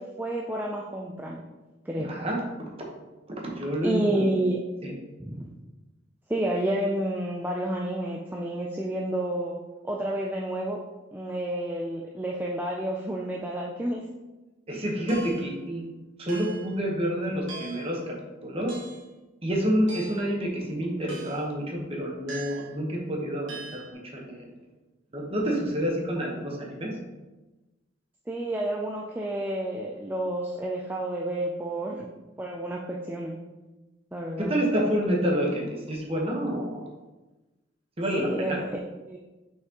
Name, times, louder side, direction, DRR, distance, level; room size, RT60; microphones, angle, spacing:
voice 1, 0.0-1.5 1.9-2.1 3.8-4.6 5.2-5.5 6.3-10.8 11.1-14.0 28.3-32.1 32.4-33.4 34.1-34.5 38.1-38.8 39.1-39.2, right 1 dB, 10° right, -2 dB, 0.4 m, -30 dB
voice 2, 2.0-2.9 3.4-4.3 4.8-4.9 14.7-15.8 16.2-18.2 18.4-18.8 19.4-24.5 25.1-26.9 34.4-36.9 38.0-38.6, equal, 30° right, -1 dB, 1.2 m, -28 dB
sound 1, 15.1-15.5 16.3-16.7 17.5-17.9 18.7-19.1 19.9-20.3 21.1-21.5 22.3-22.8 23.5-23.9, right 3 dB, 75° right, 1.3 m, -42 dB
5.8 x 5.6 x 3.0 m, 1.1 s
head